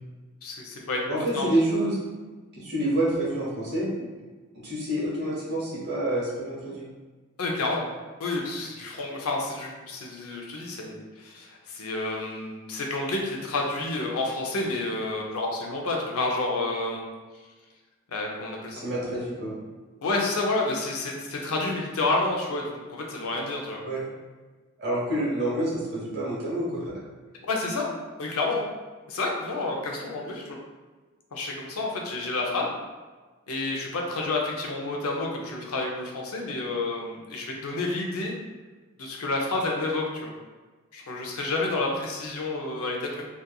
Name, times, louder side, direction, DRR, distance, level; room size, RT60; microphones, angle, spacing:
voice 1, 0.4-1.5 7.4-7.9 8.2-17.1 18.1-18.8 20.0-23.8 27.4-27.9 28.2-28.7 29.1-30.6 31.3-32.7 33.5-38.3 39.0-40.3 40.9-43.3, left 2 dB, 85° left, -1 dB, 0.5 m, -29 dB
voice 2, 1.1-2.0 2.5-4.3 4.6-6.9 18.7-19.6 23.8-24.1 24.8-27.0, right 1 dB, 55° right, -6 dB, 1.1 m, -28 dB
2.8 x 2.4 x 2.2 m, 1.3 s
head